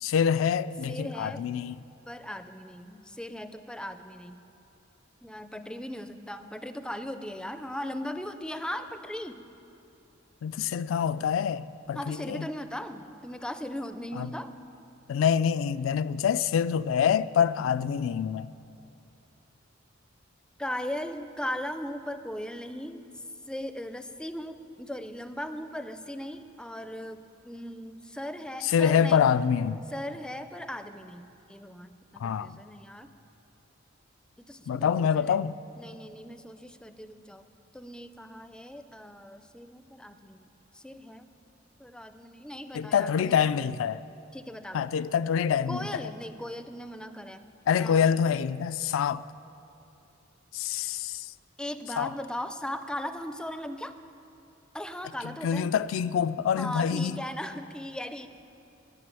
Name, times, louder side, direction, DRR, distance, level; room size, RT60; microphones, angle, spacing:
voice 1, 0.0-1.8 10.4-12.5 14.2-14.3 15.1-18.5 28.6-29.8 32.2-32.6 34.7-35.6 42.7-44.0 44.7-46.1 47.7-49.2 50.5-51.3 52.0-52.1 55.2-57.2, left 7 dB, 75° left, 0.3 m, -26 dB
voice 2, 0.9-1.4 2.1-4.4 5.2-9.4 11.9-14.5 20.6-23.0 23.5-29.2 29.9-33.1 34.5-35.4 35.8-37.5 37.7-40.5 40.7-41.3 41.8-43.6 44.3-44.9 45.7-47.5 47.8-48.1 51.6-53.9 54.7-55.7 56.6-58.3, left 1 dB, 5° left, 0.4 m, -38 dB
11.0 x 6.8 x 8.9 m
head